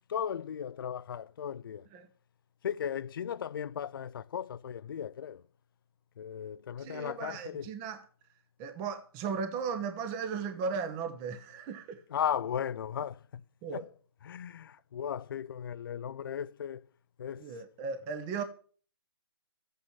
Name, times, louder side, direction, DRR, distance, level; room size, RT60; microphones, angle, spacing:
voice 1, 0.1-1.9 2.6-5.4 6.2-7.7 12.1-13.2 13.7-13.9 14.2-16.8 17.2-17.5, left 8 dB, 50° left, 0.5 m, -36 dB
voice 2, 6.8-8.0 8.6-12.0 13.6-13.8 17.4-18.4, right 5 dB, 20° right, 1.0 m, -36 dB
14.0 x 8.9 x 6.5 m
figure-of-eight pair, 145°, 15 cm